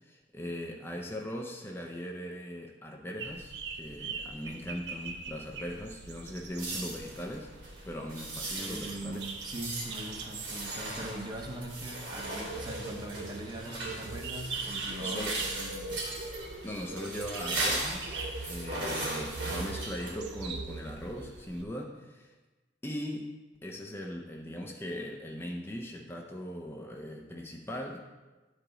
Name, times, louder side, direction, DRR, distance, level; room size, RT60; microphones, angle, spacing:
voice 1, 0.0-7.5 7.8-9.2 15.0-15.4 16.6-22.3 22.8-23.3 23.6-28.0, equal, 15° left, 1 dB, 0.5 m, -39 dB
sound 1, 3.2-21.6, right 4 dB, 65° right, 0.7 m, -41 dB
sound 2, 6.6-20.1, right 2 dB, 90° right, 2.7 m, -38 dB
voice 2, 8.6-16.1, right 1 dB, 25° right, 2 dB, 0.8 m, -41 dB
11.0 x 4.9 x 3.8 m, 1.2 s
head